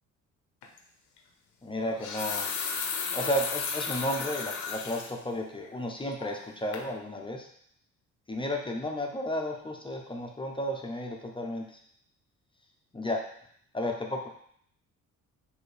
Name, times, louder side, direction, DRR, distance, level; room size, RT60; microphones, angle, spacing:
sound 1, 0.6-0.8 1.8-5.1 5.6-5.7 6.2-6.5 6.7-6.9, left 5 dB, 80° left, 0.7 m, -34 dB
voice 1, 1.6-2.5 3.1-7.5 8.3-11.8 12.9-13.2 13.7-14.3, left 1 dB, 15° left, 1 dB, 0.5 m, -33 dB
4.4 x 2.8 x 3.2 m, 0.66 s
cardioid pair, 90°, 30 cm